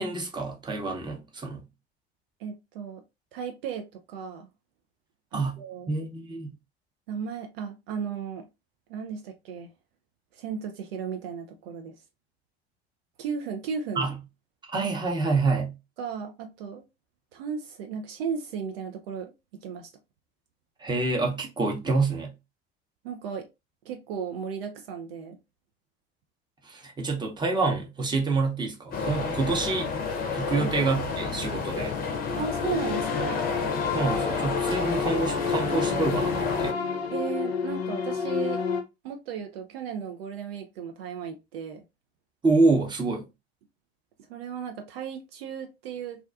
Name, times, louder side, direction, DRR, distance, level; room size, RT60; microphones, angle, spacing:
voice 1, 0.0-1.6 5.3-6.5 14.0-14.2 14.7-15.8 20.8-22.3 26.6-29.9 30.3-32.0 33.9-36.8 42.4-43.3, right 3 dB, 15° right, 0.8 m, -27 dB
voice 2, 2.4-3.0 3.3-4.5 5.3-5.9 7.1-8.5 8.9-9.7 10.3-11.9 13.2-14.1 16.0-16.8 17.3-19.3 19.6-19.9 23.0-23.4 23.8-25.4 30.5-30.7 32.4-33.4 37.1-38.6 39.0-41.8 44.3-46.2, right 6 dB, 65° right, 0.5 m, -35 dB
sound 1, 28.9-36.7, left 4 dB, 30° left, 0.6 m, -30 dB
sound 2, 31.8-38.8, left 6 dB, 75° left, 0.6 m, -30 dB
2.4 x 2.2 x 2.4 m
figure-of-eight pair, 70°, 32 cm